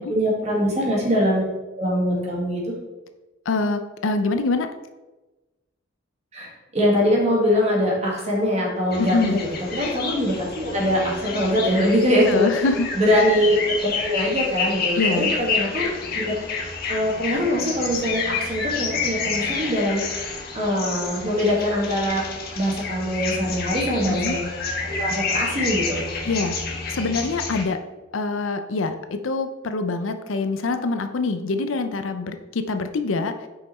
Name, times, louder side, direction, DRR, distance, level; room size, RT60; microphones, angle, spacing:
voice 1, 0.0-1.4 1.8-2.6 6.3-9.5 9.7-12.5 13.0-15.9 16.2-16.3 16.9-20.2 20.5-22.2 22.6-24.5 24.8-26.0, equal, 35° right, -2 dB, 1.9 m, -22 dB
voice 2, 3.5-4.7 9.0-9.4 12.3-12.9 15.0-15.4 24.1-24.4 26.2-26.6 26.9-27.8 28.1-33.5, left 3 dB, 80° left, 8 dB, 0.6 m, -25 dB
sound 1, 8.9-27.6, left 4 dB, 50° left, 1.4 m, -29 dB
5.8 x 5.3 x 4.2 m, 1.1 s
head